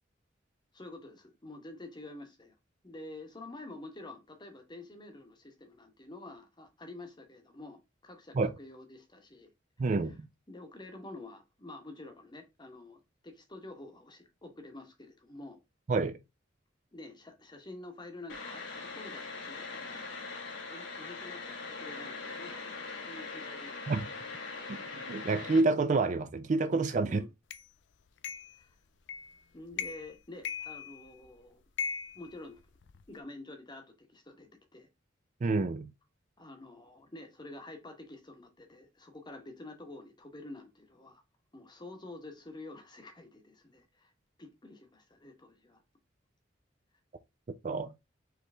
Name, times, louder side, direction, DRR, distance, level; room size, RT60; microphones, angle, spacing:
voice 1, 0.7-2.5 2.8-9.5 10.5-15.6 16.9-23.8 24.0-24.1 27.0-27.3 28.6-28.7 29.5-31.6 32.1-32.6 33.1-34.9 36.4-41.2 41.5-44.1 44.4-45.8, left 2 dB, 25° left, 0.9 m, -48 dB
voice 2, 9.8-10.3 15.9-16.2 23.9-24.1 24.7-27.2 35.4-35.9 47.6-47.9, right 3 dB, 40° right, 0.4 m, -28 dB
sound 1, 18.3-25.6, left 4 dB, 85° left, 1.4 m, -41 dB
sound 2, 27.5-27.6 28.2-28.6 29.1-29.4 29.7-30.1 30.4-31.3 31.8-33.0, left 7 dB, 70° left, 0.4 m, -38 dB
4.8 x 3.2 x 3.3 m
head